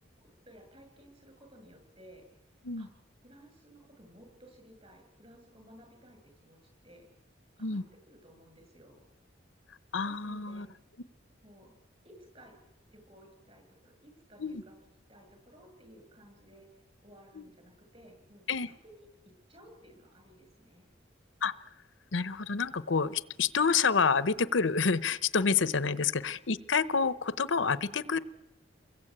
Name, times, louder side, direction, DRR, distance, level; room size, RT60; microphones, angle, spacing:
voice 1, 0.2-2.3 2.8-2.9 3.2-6.6 6.8-7.1 7.6-9.0 10.0-10.7 11.4-11.7 12.0-12.6 12.9-14.8 15.1-16.7 17.0-18.4 18.8-20.9 25.8-26.0, equal, 30° right, 6 dB, 7.5 m, -56 dB
voice 2, 9.9-10.7 14.4-14.6 17.3-17.4 18.5-18.7 21.4-21.7 22.1-28.2, left 5 dB, 85° left, 15 dB, 0.9 m, -28 dB
29.0 x 22.0 x 8.8 m, 0.94 s
head